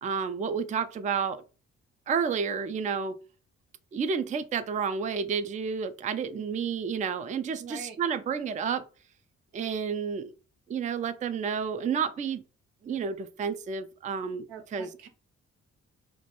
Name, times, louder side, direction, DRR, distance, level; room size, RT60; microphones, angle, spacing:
voice 1, 0.0-1.4 2.1-3.2 3.9-8.8 9.5-10.3 10.7-12.4 12.8-14.5 14.7-14.9, right 6 dB, 20° right, 0.3 m, -30 dB
voice 2, 7.6-8.0 14.5-15.1, right 6 dB, 80° right, 0.6 m, -43 dB
2.2 x 2.1 x 2.9 m
hypercardioid pair, 40°, 36 cm